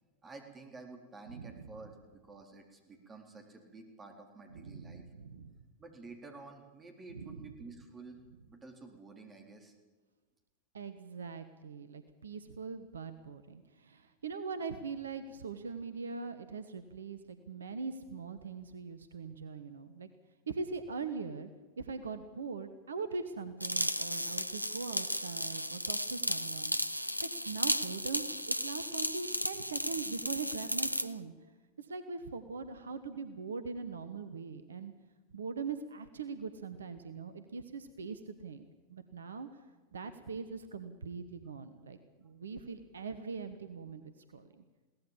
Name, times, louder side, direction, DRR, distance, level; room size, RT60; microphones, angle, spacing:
voice 1, 0.2-5.0 5.8-8.2 8.5-9.7, right 3 dB, 20° right, 4 dB, 3.9 m, -51 dB
voice 2, 1.3-1.7 4.5-5.6 7.1-7.5 10.7-20.1 20.5-21.5 21.8-31.3 31.8-34.9 35.3-39.6 39.9-44.6, right 4 dB, 70° right, 11 dB, 1.2 m, -42 dB
sound 1, 23.6-31.1, equal, 90° right, 0.7 m, -34 dB
22.0 x 17.5 x 7.4 m, 1.3 s
figure-of-eight pair, 90°, 0 cm